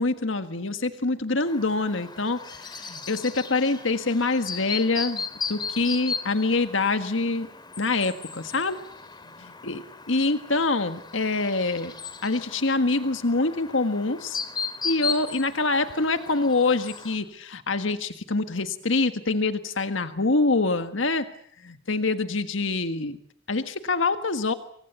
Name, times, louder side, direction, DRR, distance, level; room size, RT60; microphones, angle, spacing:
voice 1, 0.0-5.2 5.5-7.5 7.8-8.8 9.4-9.8 10.1-11.9 12.2-14.4 14.8-21.3 21.6-23.2 23.5-24.5, left 3 dB, 75° left, 9 dB, 1.6 m, -25 dB
Chirp tweet, 1.5-17.2, left 5 dB, 25° left, 3.0 m, -36 dB
28.0 x 24.0 x 8.1 m, 0.64 s
head